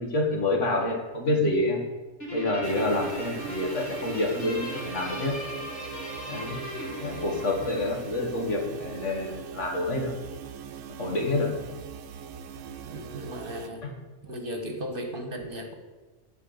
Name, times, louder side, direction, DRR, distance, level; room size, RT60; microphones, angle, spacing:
voice 1, 0.0-1.8 2.3-5.4 6.3-6.6 7.0-10.1 11.0-11.6 13.8-13.9, left 2 dB, 70° left, 1 dB, 2.1 m, -27 dB
Guitar, 2.2-8.9, left 1 dB, 55° left, 3.5 m, -38 dB
sound 1, 2.6-13.7, right 7 dB, 85° right, 1.0 m, -41 dB
voice 2, 12.9-13.8 14.2-15.7, equal, 45° right, 4 dB, 1.5 m, -36 dB
12.5 x 4.6 x 7.9 m, 1.2 s
omnidirectional pair, 1.3 m